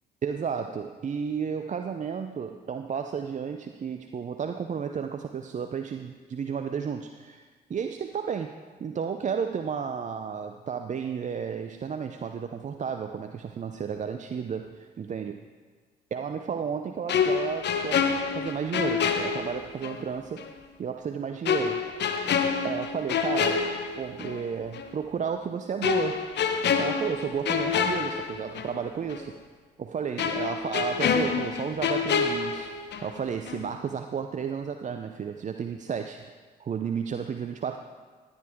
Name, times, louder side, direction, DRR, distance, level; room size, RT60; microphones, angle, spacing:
voice 1, 0.2-8.5 8.8-15.5 16.1-18.1 18.3-20.4 20.8-21.8 22.6-23.7 23.9-26.2 26.8-29.3 29.8-32.7 33.0-36.3 36.6-37.8, right 6 dB, 35° right, 6 dB, 0.6 m, -32 dB
sound 1, 17.1-20.0 20.4-20.5 21.5-24.4 24.7-24.9 25.8-28.8 29.1-29.2 30.2-33.2 33.5-33.7, left 6 dB, 60° left, 1.0 m, -27 dB
13.5 x 9.7 x 3.6 m, 1.5 s
hypercardioid pair, 55°, 21 cm